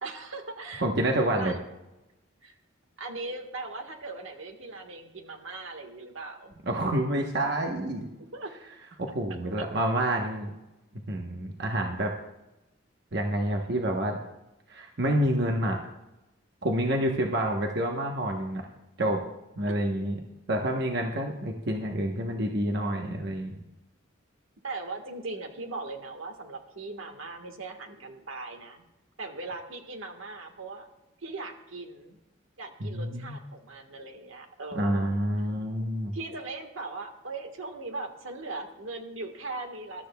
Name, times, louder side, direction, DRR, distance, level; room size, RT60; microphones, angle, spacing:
voice 1, 0.0-0.9 1.3-1.6 2.4-2.6 3.0-6.5 8.2-8.5 9.3-9.4 13.4-13.5 19.7-19.8 24.6-28.8 29.2-30.9 31.2-32.2 32.6-35.1 36.1-40.1, right 3 dB, 80° right, 4 dB, 1.5 m, -39 dB
voice 2, 0.8-1.5 6.7-8.1 9.0-10.5 11.1-12.1 13.1-14.2 14.7-15.8 16.6-18.6 19.0-19.2 19.6-20.2 20.5-23.6 32.8-33.4 34.7-36.1, right 1 dB, 55° right, 2 dB, 1.0 m, -28 dB
21.0 x 12.5 x 2.3 m, 0.97 s
head